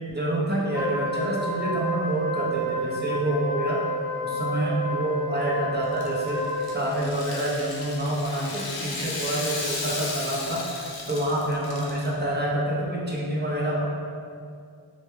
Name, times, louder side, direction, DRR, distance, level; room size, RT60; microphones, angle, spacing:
voice 1, 0.1-3.8 4.2-6.4 6.7-10.6 11.1-13.8, right 1 dB, 25° right, -4 dB, 0.5 m, -27 dB
Wind instrument woodwind instrument, 0.7-7.0, right 1 dB, 5° right, 0.8 m, -30 dB
Rattle (instrument), 5.8-12.1, left 2 dB, 55° left, 0.5 m, -35 dB
2.1 x 2.0 x 3.0 m, 2.3 s
wide cardioid pair, 55°, 46 cm